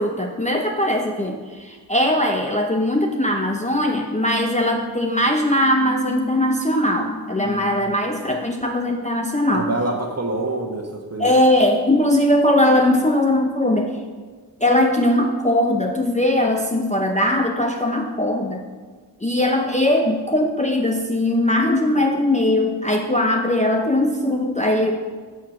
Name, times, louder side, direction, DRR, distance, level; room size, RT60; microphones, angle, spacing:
voice 1, 0.0-9.7 11.2-14.0 14.6-18.6 19.2-24.9, left 1 dB, 15° left, 1 dB, 0.6 m, -20 dB
voice 2, 7.4-7.9 9.5-11.3 21.9-22.0, right 2 dB, 35° right, 2 dB, 1.3 m, -27 dB
7.8 x 4.8 x 5.9 m, 1.5 s
wide cardioid pair, 55°, 42 cm